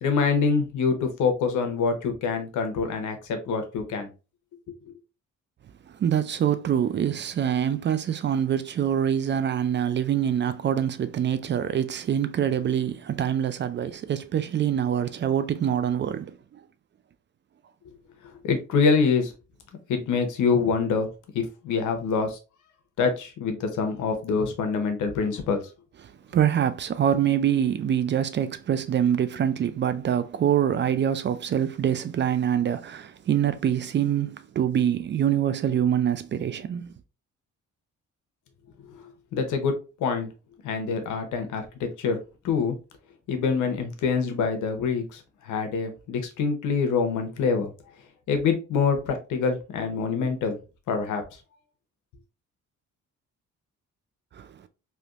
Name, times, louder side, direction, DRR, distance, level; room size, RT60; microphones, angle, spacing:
voice 1, 0.0-4.1 18.4-19.3 19.9-21.1 21.3-22.4 23.0-25.6 39.3-39.7 40.0-40.3 40.6-42.8 43.3-47.7 48.3-50.6 50.9-51.2, left 5 dB, 80° left, 0.9 m, -25 dB
voice 2, 5.9-16.6 26.3-36.9 54.3-54.6, right 9 dB, 40° right, 0.4 m, -25 dB
3.4 x 2.7 x 2.4 m
cardioid pair, 90°, 30 cm